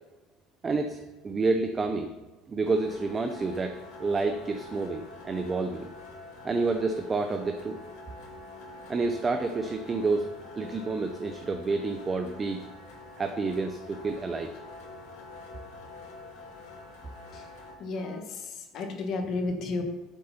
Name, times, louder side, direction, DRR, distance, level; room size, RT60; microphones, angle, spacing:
voice 1, 0.6-2.1 2.5-5.9 6.4-7.8 8.9-10.3 10.6-12.6 13.2-14.5, right 3 dB, 15° right, 6 dB, 0.5 m, -29 dB
sound 1, 2.6-17.7, left 2 dB, 80° left, 2.7 m, -46 dB
voice 2, 17.8-19.8, left 3 dB, 40° left, 5 dB, 1.2 m, -33 dB
8.2 x 6.6 x 5.5 m, 1.2 s
cardioid pair, 175°, 0 cm